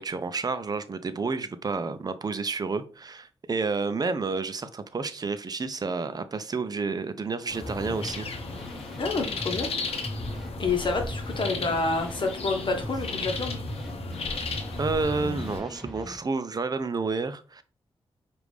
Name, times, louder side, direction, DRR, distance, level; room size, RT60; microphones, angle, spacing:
voice 1, 0.0-8.3 14.8-17.6, right 4 dB, 40° right, 11 dB, 0.5 m, -30 dB
sound 1, 7.5-15.6, left 4 dB, 70° left, 0.8 m, -35 dB
sound 2, 7.6-16.2, equal, ahead, 1.1 m, -38 dB
voice 2, 9.0-9.7 10.6-13.6, left 3 dB, 50° left, 3 dB, 1.1 m, -28 dB
4.9 x 2.5 x 3.3 m, 0.36 s
cardioid pair, 60°, 11 cm